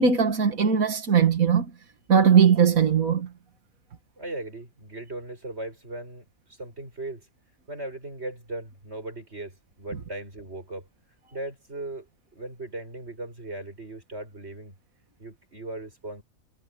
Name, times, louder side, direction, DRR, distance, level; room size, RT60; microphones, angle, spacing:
voice 1, 0.0-1.7 2.1-3.3, right 6 dB, 90° right, 2.2 m, -19 dB
voice 2, 4.2-6.2 6.5-7.3 7.7-10.9 11.3-14.7 15.2-16.2, right 2 dB, 50° right, 8.0 m, -38 dB
omnidirectional pair, 1.4 m